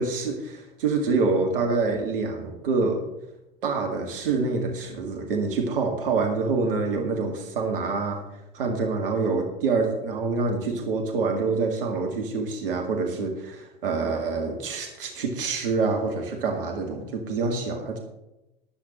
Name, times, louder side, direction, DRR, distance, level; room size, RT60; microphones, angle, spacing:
voice 1, 0.0-3.0 3.6-8.2 8.5-18.0, right 4 dB, 65° right, 2 dB, 2.1 m, -26 dB
21.0 x 8.4 x 3.1 m, 0.95 s
figure-of-eight pair, 80°, 30 cm